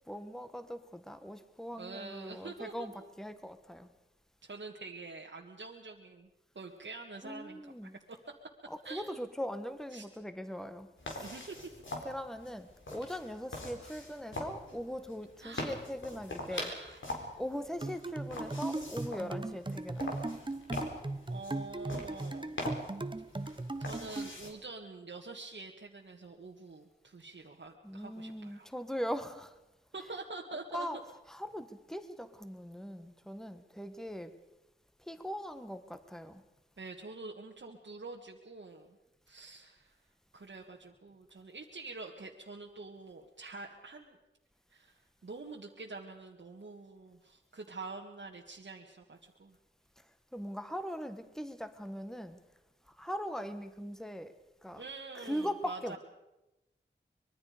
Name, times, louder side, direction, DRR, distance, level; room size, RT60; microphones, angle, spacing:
voice 1, 0.1-2.9 3.2-3.9 7.2-8.0 8.7-11.3 12.0-16.7 17.4-20.0 27.8-29.5 30.7-31.0 31.3-34.3 35.0-36.4 50.3-52.4 53.0-54.3 54.6-54.8 55.1-56.0, equal, ahead, 1.5 m, -40 dB
voice 2, 1.8-3.0 4.4-6.3 6.6-8.0 8.8-9.2 9.9-10.1 11.2-11.8 15.4-15.8 16.5-17.3 21.3-22.5 23.8-28.7 29.9-30.9 36.8-39.0 39.3-40.0 40.3-44.2 44.7-49.6 54.8-56.0, right 3 dB, 70° right, 1.7 m, -46 dB
sound 1, 11.0-24.5, left 1 dB, 80° left, 4.3 m, -43 dB
sound 2, 17.8-24.3, right 2 dB, 25° right, 1.0 m, -38 dB
25.0 x 22.0 x 5.1 m
wide cardioid pair, 60°, 20 cm